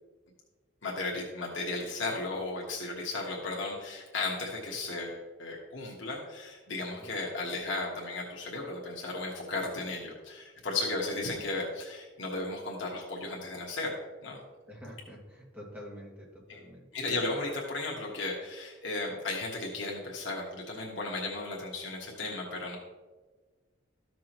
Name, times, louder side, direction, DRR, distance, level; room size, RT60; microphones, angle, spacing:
voice 1, 0.8-13.9 14.2-14.4 16.5-16.6 16.9-22.8, left 2 dB, 70° left, -2 dB, 1.3 m, -35 dB
voice 2, 6.8-7.1 14.7-16.8, equal, 10° right, -4 dB, 2.1 m, -47 dB
13.5 x 6.0 x 3.0 m, 1.3 s
head